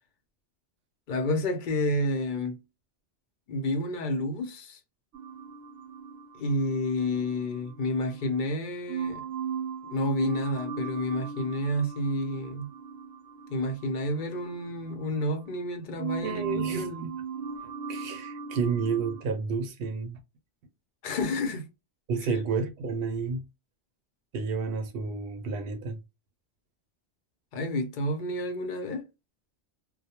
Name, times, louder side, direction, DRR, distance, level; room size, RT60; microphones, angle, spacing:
voice 1, 1.1-2.6 3.5-4.8 6.3-9.2 9.8-12.7 13.5-17.1 21.0-21.7 27.5-29.1, left 1 dB, 50° left, 0.7 m, -30 dB
sound 1, 5.1-8.4 8.9-15.7 16.0-19.2, right 6 dB, 85° right, 0.9 m, -38 dB
voice 2, 16.2-17.1 17.6-20.2 22.1-23.4 24.3-26.0, right 5 dB, 60° right, 0.8 m, -31 dB
2.2 x 2.1 x 2.8 m
omnidirectional pair, 1.2 m